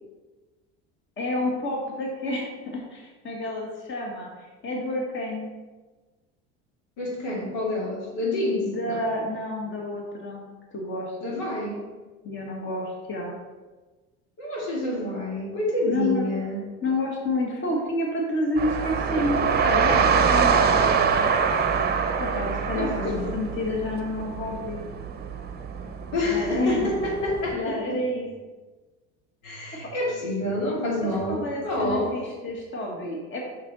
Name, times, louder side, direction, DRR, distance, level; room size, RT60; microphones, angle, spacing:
voice 1, 1.2-5.5 8.6-10.5 10.7-11.4 12.2-13.3 15.9-16.3 16.8-21.3 22.2-24.9 26.2-26.9 27.5-28.3 31.0-33.4, left 2 dB, 35° left, -1 dB, 1.7 m, -29 dB
voice 2, 7.0-9.1 11.2-11.8 14.4-16.6 22.7-23.4 26.1-28.0 29.4-32.1, left 1 dB, 80° left, -3 dB, 2.4 m, -28 dB
sound 1, 18.6-27.5, right 6 dB, 30° right, 0.8 m, -25 dB
6.6 x 5.8 x 4.1 m, 1.2 s
supercardioid pair, 95°, 32 cm